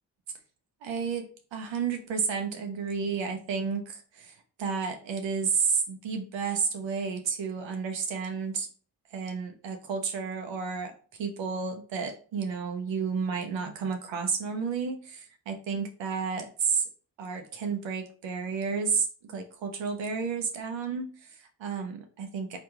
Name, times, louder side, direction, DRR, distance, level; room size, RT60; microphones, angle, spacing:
voice 1, 0.8-8.7 9.1-10.9 11.2-16.8 17.2-22.6, right 5 dB, 75° right, 5 dB, 0.6 m, -31 dB
2.9 x 2.5 x 3.4 m, 0.41 s
supercardioid pair, 45°, 45 cm